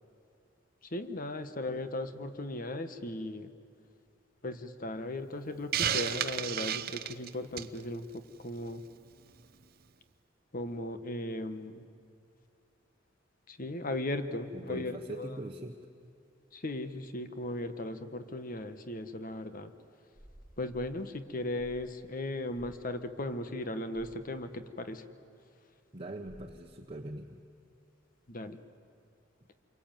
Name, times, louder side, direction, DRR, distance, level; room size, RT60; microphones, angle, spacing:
voice 1, 0.9-3.5 4.4-8.8 10.5-11.8 13.5-15.4 16.5-19.7 20.6-25.0 28.3-28.6, left 1 dB, 45° left, 9 dB, 1.4 m, -37 dB
Hiss, 5.7-7.8, right 9 dB, 50° right, 0.7 m, -32 dB
voice 2, 14.5-15.8 25.9-27.4, right 1 dB, 30° right, 2 dB, 1.2 m, -42 dB
sound 1, 20.1-21.0 21.6-22.0 22.5-22.8 23.9-24.2 26.3-26.6, equal, ahead, 2.1 m, -54 dB
28.0 x 23.0 x 9.1 m, 2.5 s
head